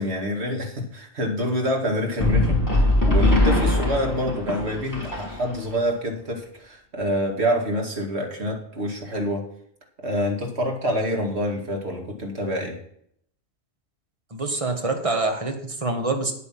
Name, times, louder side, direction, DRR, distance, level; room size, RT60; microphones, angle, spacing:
voice 1, 0.0-9.4 10.0-12.8, equal, 75° right, 1 dB, 2.6 m, -27 dB
sound 1, 2.2-5.7, left 1 dB, 15° left, 3.2 m, -21 dB
voice 2, 14.3-16.3, right 3 dB, 30° right, 4 dB, 1.6 m, -25 dB
9.7 x 8.4 x 6.0 m, 0.68 s
omnidirectional pair, 1.1 m